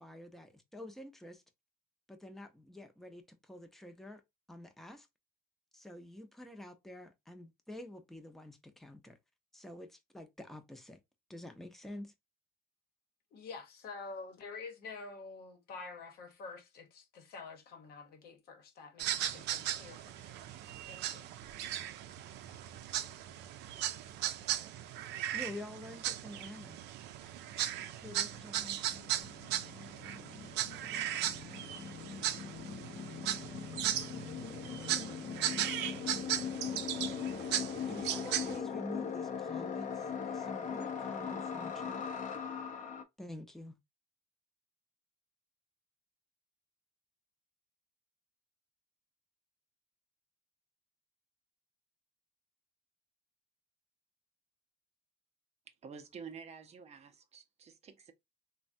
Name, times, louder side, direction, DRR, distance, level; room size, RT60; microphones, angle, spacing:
voice 1, 0.0-1.4 2.1-4.2 4.5-5.1 5.7-9.2 9.5-11.0 11.3-12.1 25.3-26.8 27.9-28.8 37.9-42.1 43.2-43.7, left 1 dB, ahead, 0.6 m, -48 dB
voice 2, 13.3-20.3 20.9-21.3, left 4 dB, 65° left, 0.9 m, -48 dB
sound 1, 19.0-38.6, right 12 dB, 85° right, 0.4 m, -37 dB
sound 2, 27.5-27.6 27.8-43.0, left 7 dB, 45° left, 0.6 m, -41 dB
voice 3, 55.8-58.1, right 6 dB, 40° right, 0.6 m, -49 dB
3.3 x 2.2 x 2.5 m
cardioid pair, 110°, 17 cm